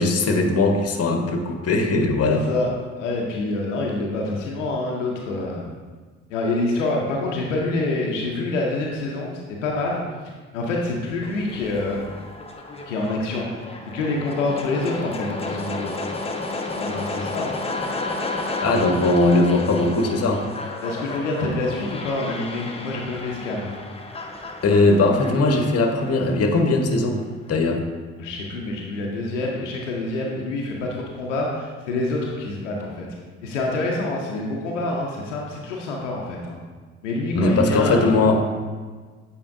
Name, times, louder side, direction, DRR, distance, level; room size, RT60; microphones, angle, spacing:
voice 1, 0.0-2.4 18.6-20.4 24.6-27.2 27.5-27.8 37.3-38.4, left 2 dB, 40° left, 4 dB, 1.0 m, -19 dB
voice 2, 2.3-2.7 3.0-5.6 6.3-10.0 10.5-12.1 12.9-13.7 13.9-16.0 16.7-17.6 20.8-23.7 28.2-33.1 33.4-36.6 37.0-38.2, left 2 dB, 90° left, -1 dB, 0.7 m, -26 dB
sound 1, 11.2-27.2, left 2 dB, 15° left, 0.8 m, -32 dB
8.6 x 4.3 x 2.5 m, 1.4 s
hypercardioid pair, 50°, 36 cm